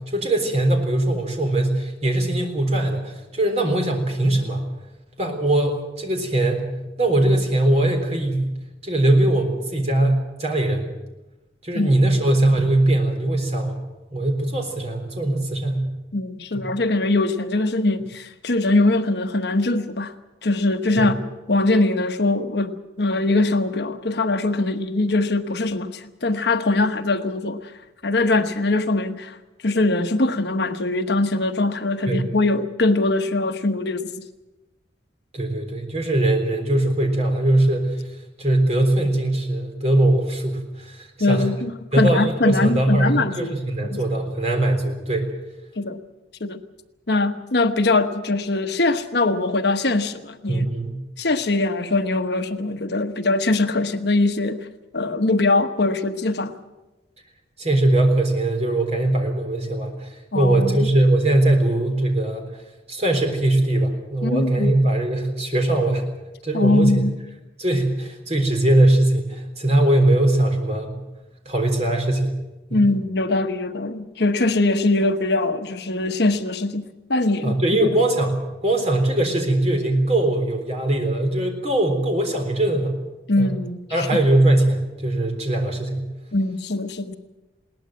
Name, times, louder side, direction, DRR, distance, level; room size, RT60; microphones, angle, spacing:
voice 1, 0.0-4.6 5.2-6.7 7.0-8.5 8.8-10.9 11.6-13.8 14.1-15.9 16.5-16.6 21.0-21.1 32.1-32.3 35.3-38.0 38.4-41.5 41.9-45.3 50.5-51.0 57.6-62.5 62.9-66.0 66.4-67.0 67.6-71.0 71.5-72.4 72.7-72.8 77.4-83.0 83.4-83.5 83.9-86.1, right 1 dB, 35° right, 3 dB, 3.9 m, -21 dB
voice 2, 16.1-20.1 20.4-21.2 21.5-27.7 28.0-29.4 29.6-34.2 41.2-43.5 43.8-44.0 45.8-46.0 46.4-46.6 47.1-50.7 51.2-54.7 54.9-56.5 60.3-60.9 64.2-64.7 66.5-67.1 72.7-77.6 83.3-84.1 86.3-87.1, left 2 dB, 60° left, 8 dB, 1.1 m, -22 dB
21.0 x 18.0 x 7.6 m, 1.1 s
head